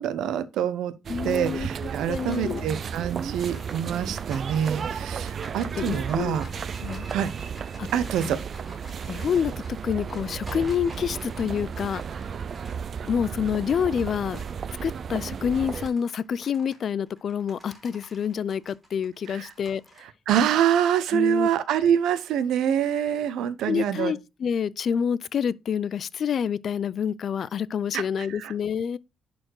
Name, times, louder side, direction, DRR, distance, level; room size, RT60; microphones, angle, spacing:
voice 1, 0.0-0.9 1.2-6.5 7.1-7.3 7.9-8.4 19.3-19.5 20.3-24.1 27.9-28.5, right 9 dB, 75° right, 0.9 m, -25 dB
sound 1, 1.0-15.9, right 6 dB, 35° right, 0.4 m, -34 dB
voice 2, 1.1-1.7 2.1-2.7 5.6-6.4 6.8-7.1 7.8-7.9 8.2-8.4 9.1-12.0 13.1-14.4 14.8-19.8 21.1-21.5 23.7-29.0, left 7 dB, 40° left, 0.4 m, -27 dB
sound 2, 2.1-14.7 15.1-20.0, equal, 10° right, 2.7 m, -50 dB
11.0 x 4.3 x 4.7 m
cardioid pair, 170°, 0 cm